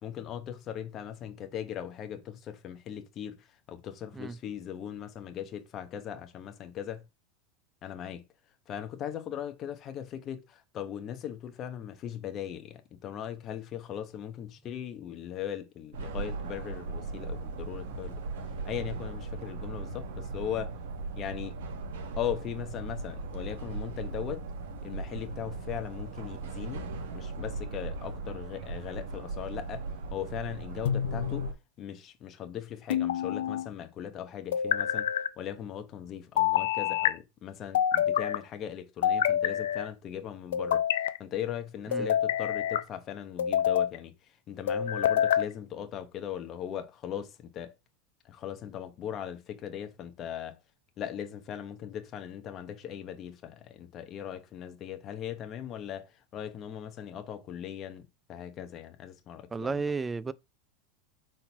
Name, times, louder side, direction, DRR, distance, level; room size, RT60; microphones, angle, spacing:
voice 1, 0.0-7.0 7.8-8.2 8.7-18.2 18.6-20.7 21.2-21.6 22.2-24.5 24.8-26.8 27.1-29.8 30.1-31.5 31.8-35.1 35.4-40.8 41.2-47.7 48.2-50.6 51.0-59.8, left 9 dB, 35° left, 1.0 m, -39 dB
sound 1, 15.9-31.5, right 3 dB, 85° right, 1.4 m, -38 dB
sound 2, 30.9-31.5 32.9-33.7 34.5-35.3 36.4-37.1 37.7-38.4 39.0-39.9 40.5-41.2 41.9-42.8 43.4-44.0 44.7-45.5, left 10 dB, 90° left, 0.6 m, -27 dB
voice 2, 59.5-60.3, right 4 dB, 15° right, 0.4 m, -32 dB
4.4 x 3.9 x 5.5 m
supercardioid pair, 130°, 0 cm